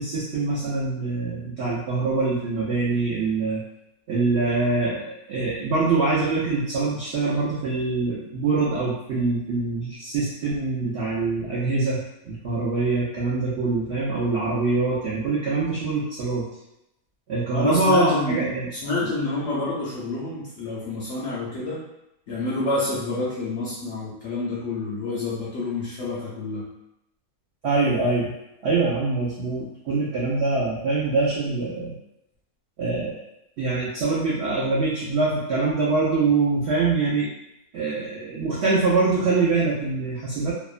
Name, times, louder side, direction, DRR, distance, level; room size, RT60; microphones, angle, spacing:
voice 1, 0.0-3.6 4.1-16.5 17.3-18.7 27.6-28.3 28.6-31.9 32.8-33.2 33.6-37.3 37.7-40.5, right 3 dB, 80° right, -6 dB, 0.5 m, -24 dB
voice 2, 17.5-21.8 22.3-26.6, left 2 dB, 70° left, -6 dB, 0.7 m, -28 dB
2.8 x 2.1 x 2.4 m, 0.85 s
omnidirectional pair, 1.7 m